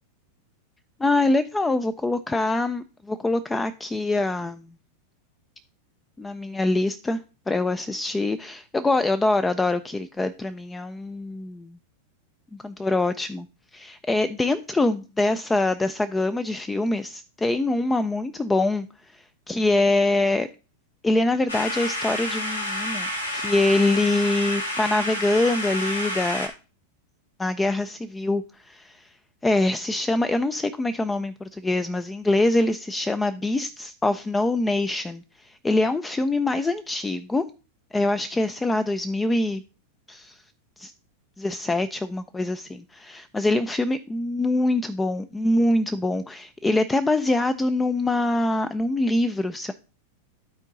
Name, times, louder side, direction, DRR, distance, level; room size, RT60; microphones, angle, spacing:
voice 1, 1.0-4.7 6.2-7.2 7.5-11.8 12.6-13.5 13.7-20.5 21.0-26.5 27.4-29.1 29.4-37.4 37.9-39.6 40.1-40.4 40.8-40.9 41.4-49.7, left 2 dB, 10° left, 13 dB, 0.4 m, -24 dB
sound 1, 21.5-26.5, left 1 dB, 75° left, 1.8 m, -29 dB
12.0 x 4.5 x 3.9 m, 0.34 s
figure-of-eight pair, 90°, 0 cm